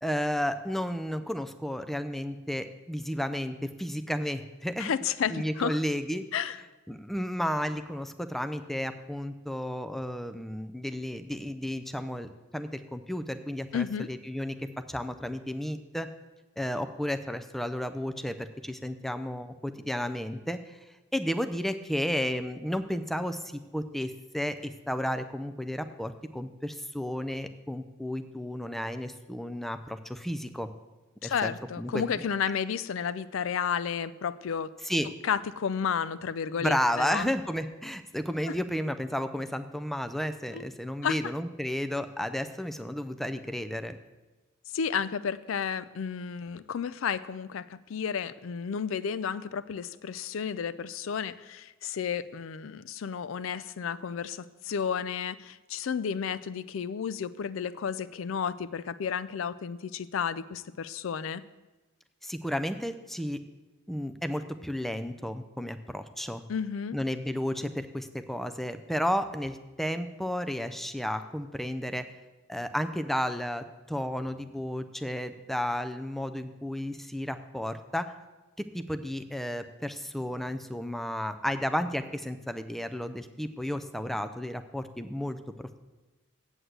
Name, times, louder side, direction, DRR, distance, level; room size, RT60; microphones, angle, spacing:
voice 1, 0.0-4.9 5.3-6.3 6.9-16.1 16.6-20.8 21.1-30.7 31.2-32.2 34.8-35.1 36.6-44.0 62.2-63.4 63.9-66.4 66.9-72.1 72.5-78.1 78.6-85.8, equal, ahead, 9 dB, 0.4 m, -33 dB
voice 2, 4.8-5.8 6.3-6.6 13.7-14.1 31.2-34.7 35.2-37.3 40.5-40.6 41.0-41.2 44.7-61.4 66.5-67.0, left 7 dB, 65° left, 16 dB, 0.4 m, -32 dB
8.0 x 7.9 x 7.8 m, 1.1 s
head